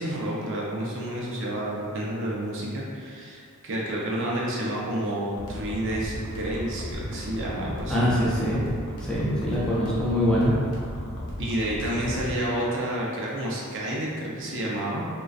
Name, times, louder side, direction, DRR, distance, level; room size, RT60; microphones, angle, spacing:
voice 1, 0.0-8.1 11.4-15.0, right 1 dB, 60° right, -4 dB, 0.5 m, -30 dB
sound 1, 5.4-12.4, equal, 85° left, 0.6 m, -35 dB
voice 2, 7.9-8.7 9.0-10.5, equal, 5° left, -8 dB, 0.4 m, -23 dB
2.5 x 2.2 x 2.3 m, 2.2 s
head